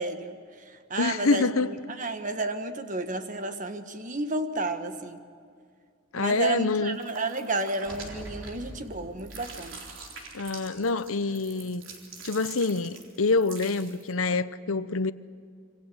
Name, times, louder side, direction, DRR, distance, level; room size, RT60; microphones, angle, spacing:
voice 1, 0.0-5.2 6.2-9.8, right 2 dB, 35° right, 1.6 m, -32 dB
voice 2, 1.0-2.0 6.1-7.0 10.3-11.8 12.2-15.1, left 3 dB, 80° left, 0.9 m, -26 dB
sound 1, 6.9-8.9 9.2-14.1, right 4 dB, 65° right, 4.0 m, -45 dB
sound 2, 7.9-11.3, equal, 5° left, 3.0 m, -45 dB
26.5 x 24.5 x 7.9 m
head